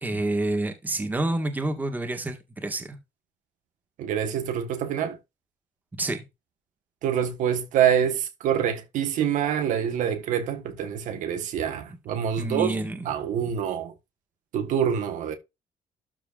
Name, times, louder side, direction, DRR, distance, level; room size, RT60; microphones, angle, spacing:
voice 1, 0.0-3.0 6.0-6.2 12.4-13.1, right 2 dB, 15° right, 1.8 m, -28 dB
voice 2, 4.0-5.2 7.0-12.8 13.0-13.9 14.5-15.4, right 9 dB, 75° right, 1.5 m, -26 dB
12.5 x 4.7 x 2.5 m
cardioid pair, 150°, 13 cm